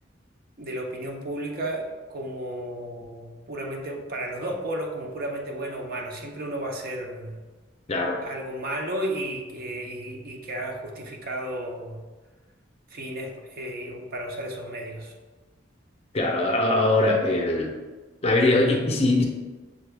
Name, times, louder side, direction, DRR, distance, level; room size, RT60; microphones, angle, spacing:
voice 1, 0.6-7.4 8.2-12.0 12.9-15.1, right 1 dB, 50° right, 1 dB, 0.6 m, -33 dB
voice 2, 16.1-17.7 18.2-19.2, left 2 dB, 30° left, 1 dB, 0.5 m, -21 dB
6.4 x 2.2 x 3.3 m, 1.3 s
head